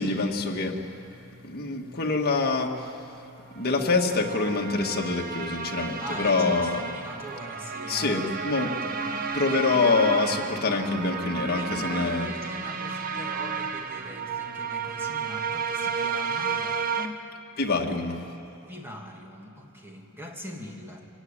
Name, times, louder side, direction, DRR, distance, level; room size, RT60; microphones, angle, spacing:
voice 1, 0.0-6.8 7.9-12.3 17.6-18.2, left 3 dB, 45° left, 1 dB, 1.8 m, -26 dB
sound 1, 3.7-17.1, right 5 dB, 40° right, 1.0 m, -32 dB
voice 2, 6.0-9.3 11.5-17.2 18.6-21.1, equal, 10° right, 0 dB, 2.4 m, -42 dB
25.0 x 16.5 x 9.9 m, 2.8 s
head